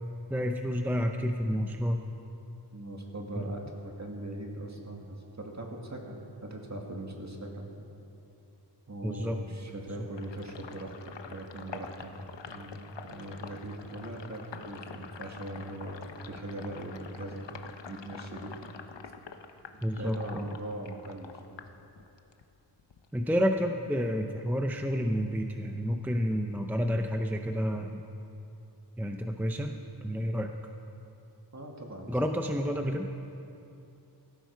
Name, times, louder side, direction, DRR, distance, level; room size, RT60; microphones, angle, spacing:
voice 1, 0.3-2.0 3.4-3.5 9.0-9.4 19.8-20.4 23.1-28.0 29.0-29.8 30.0-30.5 32.1-33.1, equal, 5° right, 4 dB, 0.6 m, -30 dB
voice 2, 2.7-7.7 8.9-12.1 12.5-17.5 17.9-18.5 19.6-21.3 31.5-32.1, right 1 dB, 40° right, 1 dB, 2.0 m, -40 dB
Sink (filling or washing), 10.2-22.4 22.8-24.2, left 6 dB, 75° left, 0.9 m, -46 dB
17.5 x 15.5 x 4.6 m, 2.9 s
wide cardioid pair, 100°, 43 cm